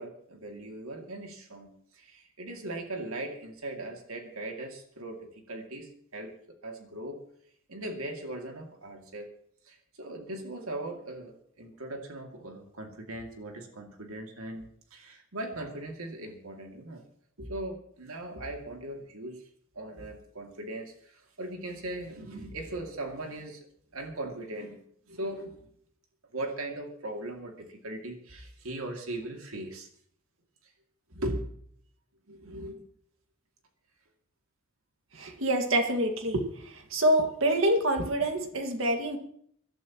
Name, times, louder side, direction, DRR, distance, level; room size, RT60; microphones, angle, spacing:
voice 1, 0.0-7.2 7.7-9.3 9.6-14.6 14.9-17.0 17.4-19.5 19.7-23.7 23.9-24.8 25.1-25.7 26.3-29.9 30.6-30.7 31.1-31.4 32.3-32.8, right 1 dB, 85° right, 2 dB, 2.5 m, -39 dB
voice 2, 35.1-36.4 36.9-39.2, right 1 dB, 65° right, 4 dB, 2.0 m, -26 dB
25.0 x 11.5 x 3.0 m, 0.64 s
head